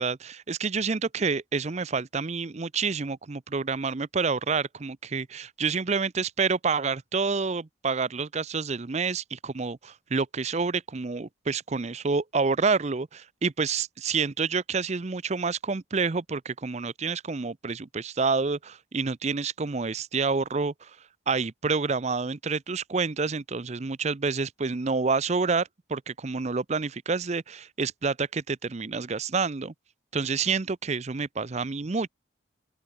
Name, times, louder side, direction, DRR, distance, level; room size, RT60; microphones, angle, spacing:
voice 1, 0.0-20.9 21.3-29.7 30.1-32.1, right 4 dB, 35° right, 0.6 m, -28 dB
open air
head